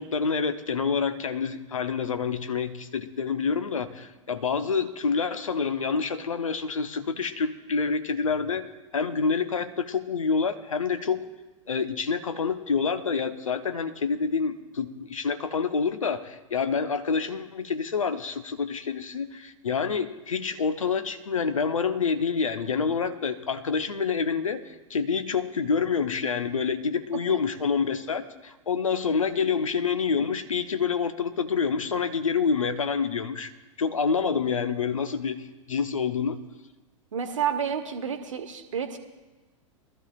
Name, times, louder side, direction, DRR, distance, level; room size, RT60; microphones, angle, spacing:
voice 1, 0.0-8.7 8.9-11.3 11.7-33.5 33.8-36.4, left 5 dB, 75° left, 10 dB, 0.9 m, -27 dB
voice 2, 37.1-39.0, right 8 dB, 70° right, 7 dB, 1.2 m, -30 dB
21.0 x 13.0 x 2.4 m, 1.2 s
figure-of-eight pair, 95°, 17 cm